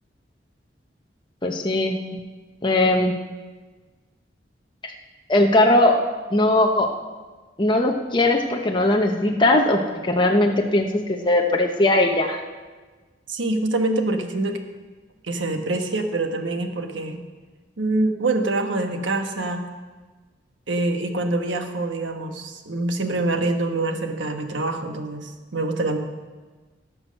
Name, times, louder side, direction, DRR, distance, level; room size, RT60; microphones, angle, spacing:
voice 1, 1.4-2.0 2.6-3.1 4.8-4.9 5.3-6.0 6.3-6.9 7.6-12.4, left 1 dB, 25° left, 1 dB, 0.8 m, -19 dB
voice 2, 13.3-14.6 15.3-17.2 17.8-19.6 20.7-26.0, right 2 dB, 90° right, 6 dB, 1.2 m, -25 dB
16.5 x 6.2 x 6.5 m, 1.3 s
head